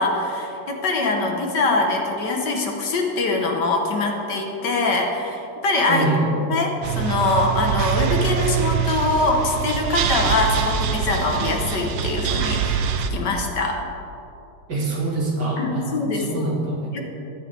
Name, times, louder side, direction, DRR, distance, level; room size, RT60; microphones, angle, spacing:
voice 1, 0.0-6.1 6.5-12.8 13.1-13.8 15.6-16.5 16.9-17.1, left 3 dB, 60° left, 2 dB, 1.7 m, -23 dB
voice 2, 5.9-6.3 14.7-17.1, right 2 dB, 55° right, -3 dB, 2.5 m, -25 dB
sound 1, 6.8-13.1, right 8 dB, 85° right, 1.6 m, -24 dB
14.5 x 12.0 x 3.4 m, 2.8 s
omnidirectional pair, 2.2 m